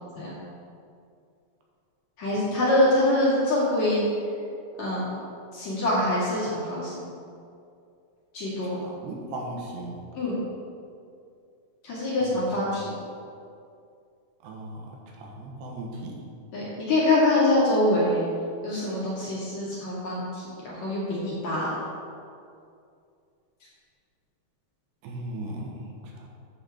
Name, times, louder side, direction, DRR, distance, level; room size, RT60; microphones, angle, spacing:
voice 1, 2.2-4.0 4.8-5.1 5.5-7.1 8.3-8.8 10.1-10.4 11.8-12.9 16.5-18.2 18.6-21.7, left 1 dB, 45° left, -8 dB, 3.0 m, -24 dB
voice 2, 8.7-10.0 12.2-12.5 14.4-16.2 25.0-25.9 26.2-26.3, right 1 dB, 80° right, 0 dB, 3.4 m, -37 dB
9.0 x 6.1 x 7.2 m, 2.4 s
omnidirectional pair, 5.1 m